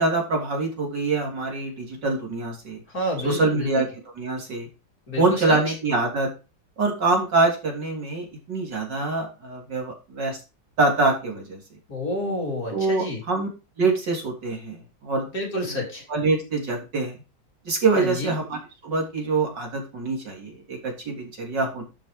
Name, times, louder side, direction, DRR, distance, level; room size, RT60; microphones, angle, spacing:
voice 1, 0.0-2.8 3.2-3.9 4.2-4.7 5.2-6.3 6.8-10.4 10.8-11.6 12.7-13.5 13.8-15.3 15.7-15.8 16.1-17.2 17.7-21.8, right 3 dB, 75° right, 0 dB, 4.1 m, -25 dB
voice 2, 2.9-3.9 5.1-5.6 11.9-13.2 15.3-16.1 18.0-18.3, left 1 dB, 50° left, 0 dB, 4.2 m, -29 dB
12.0 x 5.2 x 5.2 m, 0.30 s
omnidirectional pair, 1.9 m